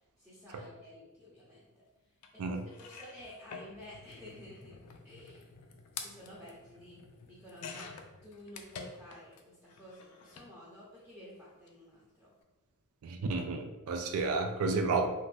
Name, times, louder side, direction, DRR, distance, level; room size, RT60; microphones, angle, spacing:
voice 1, 0.2-1.8 2.3-4.8 5.0-5.4 6.0-7.0 7.3-7.9 8.2-12.3 14.7-14.8, left 1 dB, 5° right, -7 dB, 0.6 m, -51 dB
sound 1, 2.2-2.3 2.7-9.4 9.7-10.5 11.5-11.7 11.9-12.0, left 5 dB, 85° left, 0.4 m, -49 dB
voice 2, 13.0-15.1, right 3 dB, 65° right, 6 dB, 0.3 m, -31 dB
2.5 x 2.5 x 3.3 m, 1.1 s
head